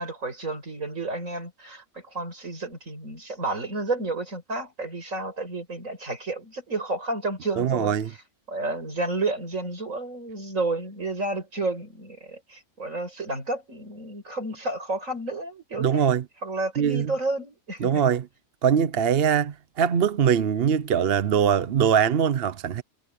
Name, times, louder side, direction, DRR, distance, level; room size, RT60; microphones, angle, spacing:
voice 1, 0.0-7.9 8.5-16.1 16.4-18.0, right 2 dB, 70° right, 6.4 m, -31 dB
voice 2, 7.6-8.1 15.8-16.2 16.8-17.1 17.8-18.3 18.6-22.8, right 8 dB, 50° right, 0.9 m, -22 dB
omnidirectional pair, 1.4 m